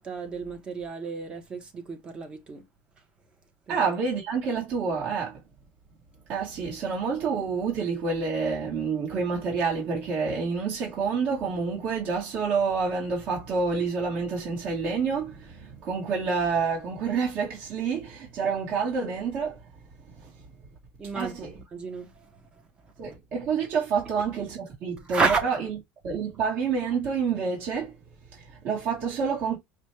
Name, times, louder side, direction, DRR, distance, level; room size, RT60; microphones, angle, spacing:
voice 1, 0.0-2.7 3.7-3.8 21.0-23.2 25.0-25.4, right 4 dB, 25° right, 0.9 m, -31 dB
voice 2, 3.7-5.4 6.3-19.6 20.1-20.3 21.1-21.5 23.0-25.6 26.0-27.9 28.3-29.6, right 5 dB, 45° right, 1.5 m, -28 dB
5.1 x 2.2 x 3.1 m
cardioid pair, 150°, 4 cm